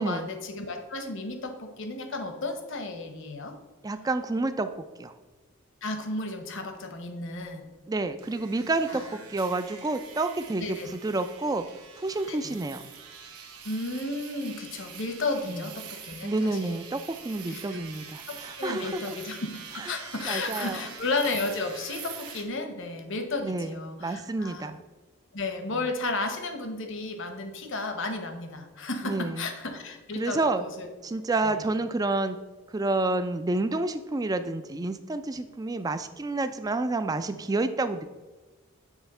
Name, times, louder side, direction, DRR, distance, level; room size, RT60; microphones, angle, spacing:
voice 1, 0.0-3.5 5.8-7.7 8.9-9.1 10.6-10.9 12.3-12.6 13.6-16.8 17.5-17.8 18.3-24.7 25.3-30.9 31.4-31.6, left 3 dB, 55° left, 6 dB, 0.9 m, -33 dB
voice 2, 3.8-4.7 5.0-5.1 7.9-11.7 12.0-12.8 15.5-15.6 16.2-19.2 19.8-19.9 20.3-20.8 23.4-24.8 29.0-29.5 30.2-30.6 31.0-32.4 32.7-38.1, right 2 dB, 15° right, 10 dB, 0.3 m, -29 dB
sound 1, 8.2-22.4, right 7 dB, 85° right, 1.2 m, -44 dB
9.1 x 3.4 x 5.4 m, 1.3 s
head